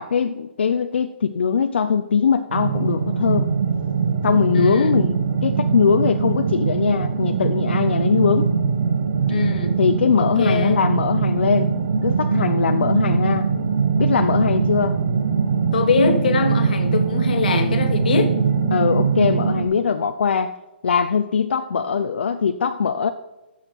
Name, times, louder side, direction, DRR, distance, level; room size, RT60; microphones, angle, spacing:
voice 1, 0.0-3.5 4.2-8.5 9.8-11.7 12.0-13.5 14.0-15.0 18.7-20.5 20.8-23.1, left 6 dB, 75° left, 0.6 m, -21 dB
sound 1, 2.5-19.6, right 5 dB, 50° right, 1.5 m, -22 dB
voice 2, 4.5-5.0 9.3-9.8 10.2-10.8 15.7-18.4, left 5 dB, 50° left, 1.4 m, -22 dB
14.0 x 7.3 x 4.6 m
hypercardioid pair, 175°, 6 cm